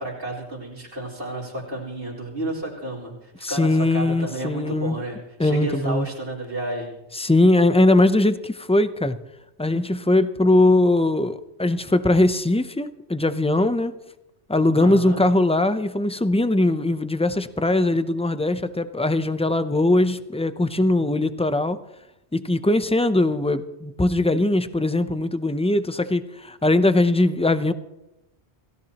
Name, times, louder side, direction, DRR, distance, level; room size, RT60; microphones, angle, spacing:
voice 1, 0.0-6.9 14.8-15.2, right 1 dB, 80° right, 4.6 m, -31 dB
voice 2, 3.4-5.0 5.4-6.1 7.1-9.2 9.6-14.0 14.5-21.8 22.3-27.7, left 2 dB, 10° left, 0.4 m, -20 dB
28.5 x 16.5 x 2.9 m
omnidirectional pair, 1.1 m